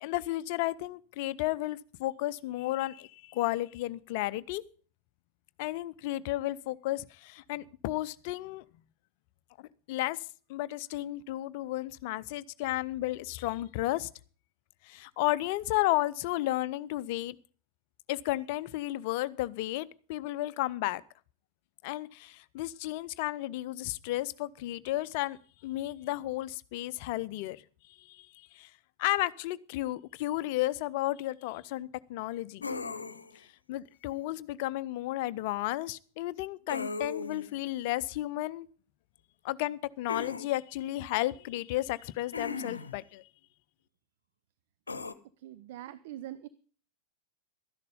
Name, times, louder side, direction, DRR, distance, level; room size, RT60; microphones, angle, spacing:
voice 1, 0.0-4.6 5.6-8.6 9.9-10.2 10.5-14.1 14.8-17.4 18.1-21.0 21.8-27.6 28.0-28.7 29.0-32.7 33.7-38.7 39.4-43.2, left 16 dB, 50° left, 18 dB, 0.6 m, -33 dB
sound 1, 32.6-33.4 36.7-37.5 40.1-40.5 42.3-43.0 44.9-45.1, left 4 dB, 75° left, 0.8 m, -37 dB
voice 2, 45.4-46.5, right 13 dB, 50° right, 14 dB, 0.6 m, -43 dB
13.0 x 10.5 x 5.3 m, 0.41 s
figure-of-eight pair, 90°, 0 cm